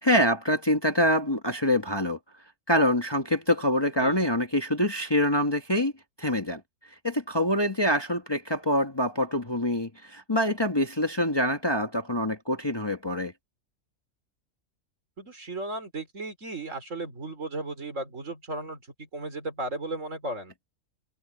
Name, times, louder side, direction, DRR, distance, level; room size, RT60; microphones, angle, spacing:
voice 1, 0.0-2.2 2.7-5.9 6.2-6.6 7.0-13.3, left 1 dB, 20° left, 1.3 m, -25 dB
voice 2, 15.2-20.5, right 2 dB, 60° right, 4.1 m, -35 dB
omnidirectional pair, 1.5 m